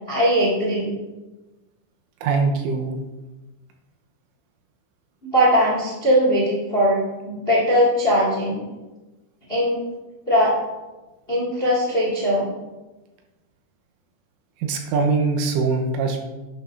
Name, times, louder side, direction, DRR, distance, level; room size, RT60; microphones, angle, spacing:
voice 1, 0.1-0.9 5.2-8.6 9.5-9.7 10.3-10.6 11.3-12.5, equal, 30° left, -5 dB, 1.0 m, -20 dB
voice 2, 2.2-3.0 14.6-16.2, right 4 dB, 85° right, 3 dB, 3.6 m, -22 dB
11.5 x 9.1 x 2.7 m, 1.1 s
omnidirectional pair, 5.7 m